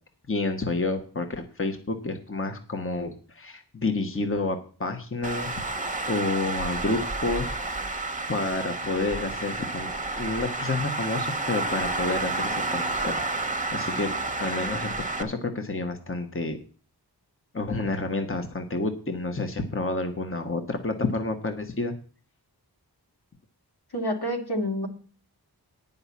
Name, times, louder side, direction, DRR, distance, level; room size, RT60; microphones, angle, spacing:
voice 1, 0.3-7.6 8.3-13.2 13.7-14.1 14.4-16.6 17.5-21.9, left 3 dB, 30° left, 6 dB, 1.2 m, -29 dB
Traffic noise roadway noise, 5.2-15.2, right 3 dB, 20° right, 1.0 m, -30 dB
voice 2, 23.9-24.9, equal, 70° left, 2 dB, 2.3 m, -28 dB
9.8 x 5.5 x 8.3 m, 0.41 s
wide cardioid pair, 65°, 39 cm